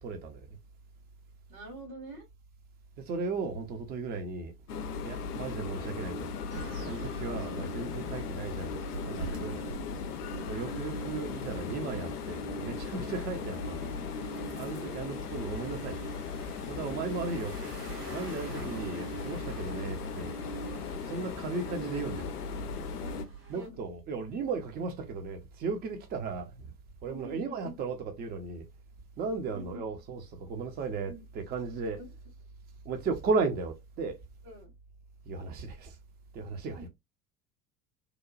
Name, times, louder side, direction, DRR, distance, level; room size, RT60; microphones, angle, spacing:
voice 1, 0.0-0.6 3.0-4.5 5.0-6.3 6.8-9.6 10.5-13.9 14.6-16.0 16.7-17.7 18.1-20.4 21.0-22.3 23.5-26.7 27.0-28.7 29.2-32.0 32.8-34.2 35.3-36.0 36.3-36.8, right 4 dB, 20° right, 0.5 m, -35 dB
voice 2, 1.5-2.3 5.1-5.4 7.1-7.6 9.5-9.8 10.3-10.6 13.1-13.3 14.5-15.0 16.8-17.3 18.4-18.7 22.9-23.8 27.0-27.8 29.5-29.9 31.1-31.2 32.0-32.1 34.4-34.7 36.7-36.9, right 1 dB, 65° right, 1.7 m, -48 dB
sound 1, 4.7-23.2, left 4 dB, 75° left, 0.5 m, -37 dB
sound 2, 6.5-23.7, right 4 dB, 80° right, 1.1 m, -47 dB
2.9 x 2.2 x 2.4 m
figure-of-eight pair, 75°, 46 cm